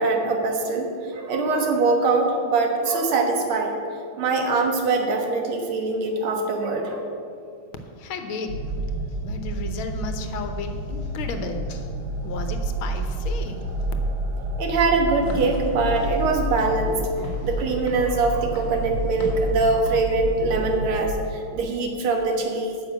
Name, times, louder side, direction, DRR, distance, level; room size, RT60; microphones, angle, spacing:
voice 1, 0.0-3.8 4.2-7.1 14.6-17.0 17.4-22.8, right 3 dB, 90° right, 3 dB, 2.2 m, -23 dB
voice 2, 8.0-8.5 9.1-11.9 12.2-13.7, left 4 dB, 80° left, 6 dB, 1.8 m, -34 dB
sound 1, 8.5-21.1, right 1 dB, 60° right, 1.4 m, -29 dB
Walk footsteps / Siren, 15.1-20.7, left 1 dB, 50° left, 1.9 m, -40 dB
9.5 x 6.5 x 8.2 m, 2.4 s
omnidirectional pair, 2.3 m